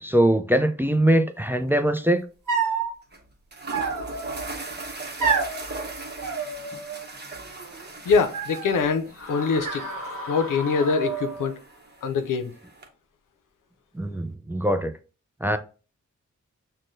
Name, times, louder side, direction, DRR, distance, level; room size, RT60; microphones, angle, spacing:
voice 1, 0.0-2.2 13.9-14.9 15.4-15.6, right 1 dB, 5° right, 0.4 m, -22 dB
sound 1, 1.5-1.7 2.0-2.1 3.1-3.2 3.5-12.9, right 3 dB, 35° right, 0.9 m, -38 dB
sound 2, 2.5-2.9 3.7-4.4 5.2-5.6 6.2-7.0 7.3-7.9 8.3-8.9 9.6-10.5 10.8-11.5, right 5 dB, 75° right, 0.9 m, -29 dB
voice 2, 8.1-9.8 10.3-11.5 12.0-12.5, left 5 dB, 85° left, 0.5 m, -24 dB
sound 3, 9.1-11.7, left 2 dB, 45° left, 1.0 m, -37 dB
6.0 x 2.2 x 2.5 m
cardioid pair, 40°, 31 cm